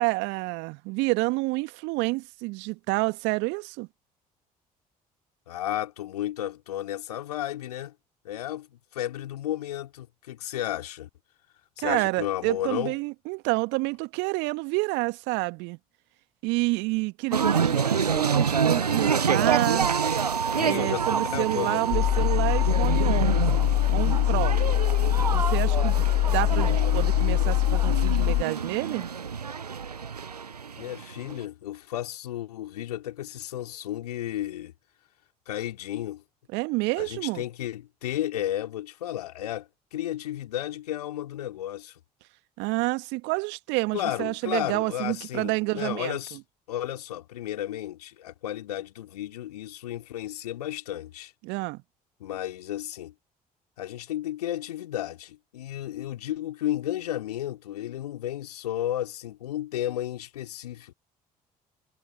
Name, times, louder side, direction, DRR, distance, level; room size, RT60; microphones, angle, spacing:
voice 1, 0.0-3.9 11.8-15.8 16.4-19.9 20.6-24.6 25.1-29.1 36.5-37.4 42.6-46.2 51.4-51.8, right 26 dB, 65° right, 1.7 m, -29 dB
voice 2, 5.5-7.9 8.2-11.1 11.8-12.9 20.5-22.0 30.8-34.7 35.5-36.2 37.0-42.0 43.9-46.4 46.7-51.3 52.2-53.1 53.8-60.9, left 12 dB, 80° left, 3.4 m, -33 dB
sound 1, 17.3-31.4, right 6 dB, 90° right, 0.7 m, -27 dB
sound 2, 21.9-28.4, left 17 dB, 55° left, 0.5 m, -23 dB
figure-of-eight pair, 50°, 20 cm